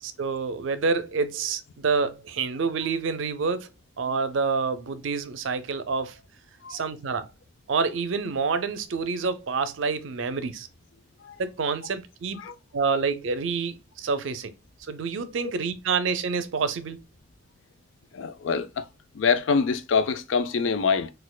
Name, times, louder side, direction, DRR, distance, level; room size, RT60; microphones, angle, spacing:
voice 1, 0.0-3.7 4.0-6.2 6.7-7.3 7.7-10.7 11.4-12.4 12.7-14.5 14.9-17.0, right 5 dB, 80° right, 0.5 m, -27 dB
voice 2, 18.1-18.9 19.1-21.1, left 5 dB, 75° left, 0.4 m, -25 dB
4.2 x 2.4 x 2.2 m
head